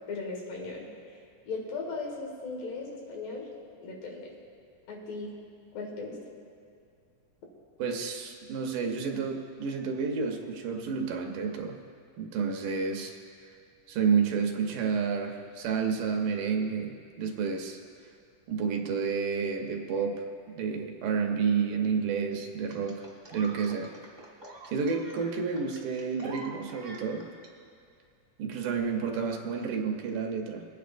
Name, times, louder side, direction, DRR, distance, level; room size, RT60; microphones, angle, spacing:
voice 1, 0.1-0.9 1.5-3.5 3.8-4.3 4.9-5.3 5.8-6.2, left 3 dB, 85° left, -1 dB, 3.4 m, -37 dB
voice 2, 7.8-11.8 12.2-13.2 13.9-17.8 18.5-20.2 20.6-23.9 24.7-27.3 28.4-30.6, right 5 dB, 80° right, 2 dB, 2.5 m, -30 dB
sound 1, 22.7-27.5 28.7-28.8, right 2 dB, 20° right, 1.2 m, -46 dB
23.0 x 9.3 x 2.5 m, 2.2 s
omnidirectional pair, 3.8 m